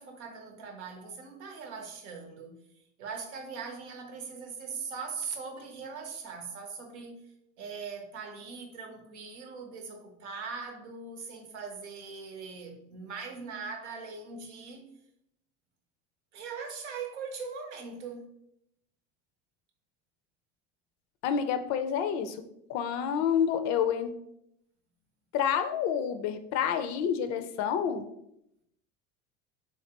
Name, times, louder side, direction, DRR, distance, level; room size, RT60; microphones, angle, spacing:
voice 1, 0.0-2.6 3.0-14.8 16.3-18.3, right 5 dB, 90° right, 0.8 m, -41 dB
voice 2, 21.2-22.4 22.7-24.1 25.3-28.1, left 8 dB, 55° left, 0.5 m, -28 dB
3.6 x 3.2 x 2.8 m
hypercardioid pair, 90°, 34 cm